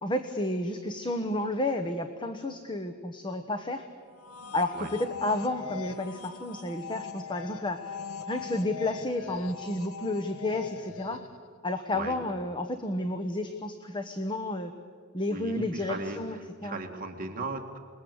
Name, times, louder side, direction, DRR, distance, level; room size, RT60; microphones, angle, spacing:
voice 1, 0.0-3.9 4.5-8.0 8.3-11.2 11.6-14.7 15.1-16.8, left 1 dB, 20° left, 6 dB, 1.1 m, -31 dB
sound 1, 4.1-11.5, left 6 dB, 80° left, 1.0 m, -41 dB
voice 2, 15.3-17.8, right 2 dB, 40° right, 3 dB, 2.2 m, -37 dB
26.5 x 21.5 x 8.0 m, 2.1 s
head